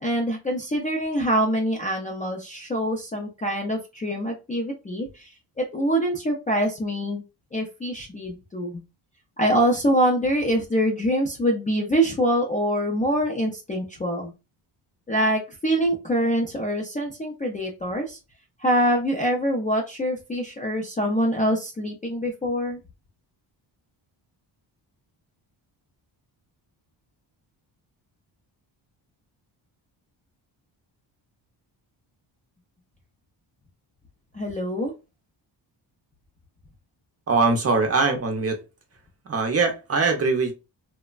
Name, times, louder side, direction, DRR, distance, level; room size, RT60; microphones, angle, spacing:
voice 1, 0.0-7.2 7.5-8.8 9.4-14.3 15.1-18.2 18.6-22.8 34.3-34.9, equal, 20° left, -3 dB, 0.3 m, -25 dB
voice 2, 37.3-38.6 39.3-40.5, right 4 dB, 35° right, 4 dB, 0.5 m, -22 dB
3.1 x 2.0 x 2.3 m, 0.28 s
wide cardioid pair, 165°, 46 cm